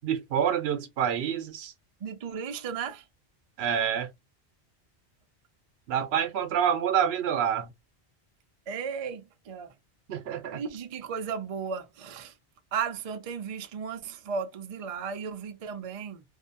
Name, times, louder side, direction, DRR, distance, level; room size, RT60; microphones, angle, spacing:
voice 1, 0.0-1.7 3.6-4.1 5.9-7.7 10.1-10.6, right 8 dB, 75° right, 0.8 m, -27 dB
voice 2, 2.0-3.1 8.7-9.7 10.5-12.3 12.7-16.2, right 6 dB, 50° right, 0.4 m, -35 dB
2.6 x 2.2 x 2.5 m
omnidirectional pair, 1.1 m